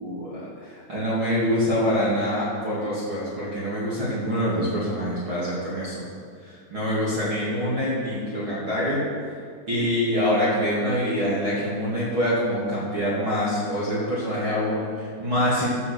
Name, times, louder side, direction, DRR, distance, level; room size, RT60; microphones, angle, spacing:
voice 1, 0.0-6.0 6.4-9.1 9.7-15.7, equal, 40° right, -8 dB, 2.0 m, -25 dB
14.5 x 6.7 x 6.8 m, 2.1 s
omnidirectional pair, 5.6 m